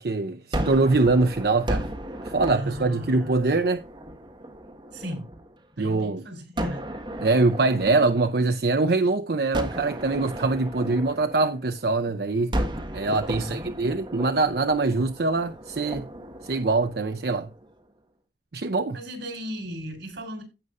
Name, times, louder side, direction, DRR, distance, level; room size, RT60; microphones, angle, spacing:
voice 1, 0.0-1.9 2.2-3.9 5.8-6.2 7.2-12.5 12.9-16.1 16.4-17.5 18.5-19.0, right 3 dB, 60° right, 0.6 m, -23 dB
Gunshot gunfire, 0.5-5.6 6.6-9.0 9.5-12.0 12.5-17.7, right 1 dB, 25° right, 1.4 m, -35 dB
voice 2, 2.5-3.6 4.9-5.3 5.8-6.8 13.3-13.7 18.9-20.4, equal, 85° right, 3.8 m, -35 dB
16.0 x 5.4 x 2.5 m
head